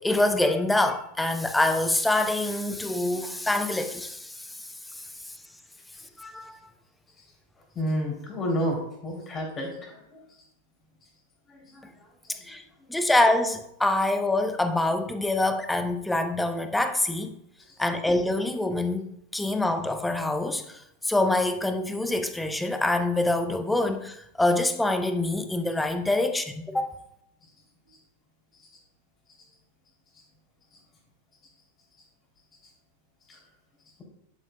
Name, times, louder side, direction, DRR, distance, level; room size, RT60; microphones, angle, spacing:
voice 1, 0.0-5.3 6.2-6.6 12.4-12.6 12.9-17.4 17.8-26.9, left 2 dB, 5° left, 0.7 m, -25 dB
voice 2, 7.7-10.2 11.5-11.8 12.2-12.4 33.3-33.4, equal, 25° left, 2.9 m, -31 dB
10.5 x 8.7 x 2.2 m
figure-of-eight pair, 90°, 0 cm